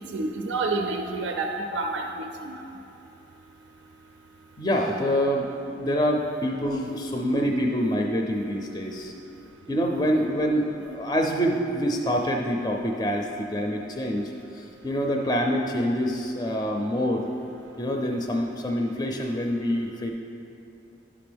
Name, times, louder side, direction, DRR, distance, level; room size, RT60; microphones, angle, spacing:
voice 1, 0.1-2.6, right 3 dB, 85° right, 3 dB, 0.5 m, -29 dB
voice 2, 4.6-5.5 5.8-9.1 9.7-17.3 17.8-20.1, equal, 20° left, 1 dB, 0.4 m, -26 dB
11.0 x 6.0 x 3.4 m, 2.9 s
head